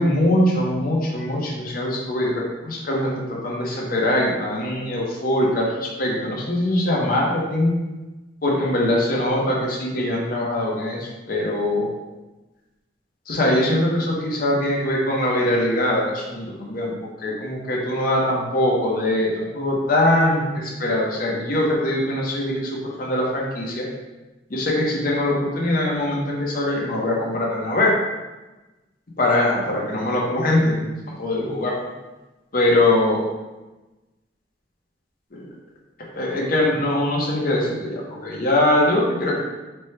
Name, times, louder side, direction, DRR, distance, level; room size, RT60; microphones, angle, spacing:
voice 1, 0.0-7.7 8.4-11.9 13.3-16.9 17.2-23.9 24.5-27.9 29.2-30.9 31.2-31.8 32.5-33.2 35.3-35.4 36.1-39.4, left 1 dB, 50° left, -3 dB, 0.8 m, -22 dB
4.3 x 2.2 x 3.2 m, 1.1 s
head